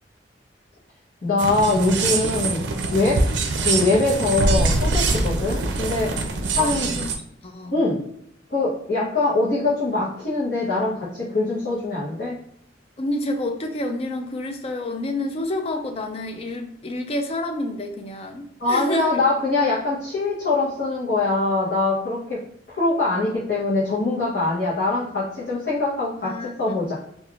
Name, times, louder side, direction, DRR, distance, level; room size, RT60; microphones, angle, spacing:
voice 1, 1.2-2.6 2.9-3.2 3.6-6.2 6.5-6.9 7.7-8.0 8.5-12.4 18.6-22.4 22.7-26.9, left 2 dB, 65° left, -9 dB, 0.9 m, -23 dB
sound 1, 1.4-7.2, right 3 dB, 80° right, 0.4 m, -23 dB
voice 2, 6.6-7.1 7.4-7.7 13.0-19.1 26.2-26.7, left 2 dB, 35° left, 5 dB, 0.3 m, -29 dB
3.4 x 2.4 x 2.4 m, 0.73 s
head